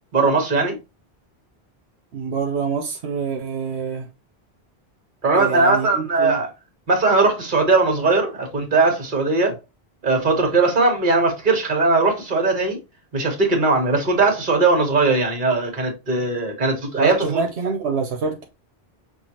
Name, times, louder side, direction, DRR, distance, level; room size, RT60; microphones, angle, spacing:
voice 1, 0.1-0.7 5.2-6.5 6.9-9.5 10.0-12.8 13.1-17.4, right 3 dB, 50° right, 1.5 m, -19 dB
voice 2, 2.1-4.1 5.4-6.4 17.0-18.4, right 5 dB, 85° right, 1.1 m, -26 dB
5.9 x 2.4 x 2.9 m
omnidirectional pair, 1.1 m